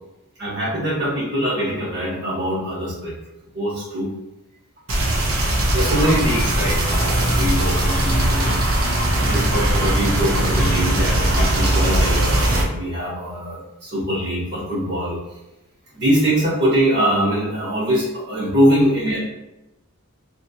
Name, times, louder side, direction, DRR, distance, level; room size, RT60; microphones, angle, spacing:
voice 1, 0.4-3.1 3.5-4.1 5.7-8.6 9.2-15.2 15.9-19.3, equal, 55° right, -5 dB, 1.2 m, -22 dB
sound 1, 4.9-12.6, right 1 dB, 70° right, 0.7 m, -19 dB
3.1 x 2.8 x 2.7 m, 0.97 s
head